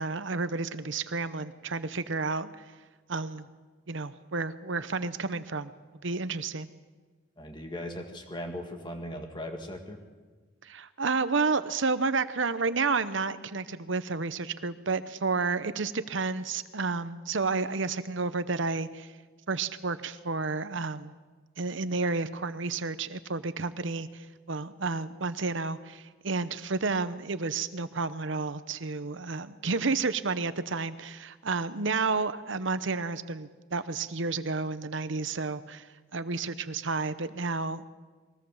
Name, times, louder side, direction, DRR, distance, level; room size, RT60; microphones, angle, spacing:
voice 1, 0.0-2.6 3.1-3.5 3.9-5.7 6.0-6.7 10.6-19.1 19.5-21.1 21.6-35.9 36.1-38.0, right 4 dB, 70° right, 13 dB, 0.9 m, -31 dB
voice 2, 7.4-10.0, left 1 dB, 20° left, 4 dB, 2.0 m, -38 dB
22.5 x 17.5 x 7.2 m, 1.4 s
head